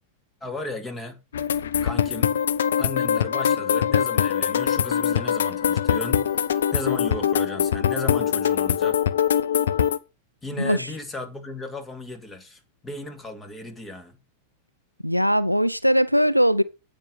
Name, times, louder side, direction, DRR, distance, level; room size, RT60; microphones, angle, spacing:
voice 1, 0.4-1.2 1.8-2.4 2.8-9.0 10.4-14.2, left 2 dB, 15° left, 2.2 m, -35 dB
sound 1, 1.3-10.0, left 9 dB, 65° left, 0.6 m, -23 dB
voice 2, 15.0-16.6, equal, 90° right, 0.4 m, -20 dB
8.6 x 5.4 x 6.1 m
figure-of-eight pair, 90°, 0 cm